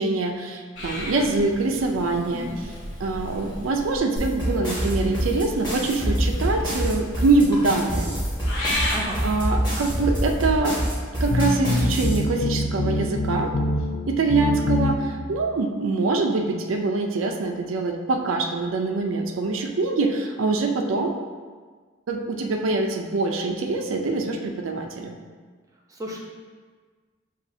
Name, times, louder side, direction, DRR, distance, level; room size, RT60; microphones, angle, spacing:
voice 1, 0.0-2.5 3.0-8.1 9.2-10.8 11.2-13.5 14.1-21.1 22.1-25.1, right 3 dB, 75° right, 3 dB, 0.4 m, -24 dB
Purr / Meow, 0.7-4.0 4.9-10.6, left 1 dB, 70° left, 1.0 m, -34 dB
sound 1, 4.2-12.2, equal, 25° left, 1.3 m, -26 dB
voice 2, 8.9-9.2 14.5-14.8 25.9-26.2, equal, 15° right, -2 dB, 0.6 m, -34 dB
sound 2, 11.3-15.3, left 1 dB, 50° left, 0.3 m, -25 dB
7.1 x 2.4 x 2.6 m, 1.5 s
head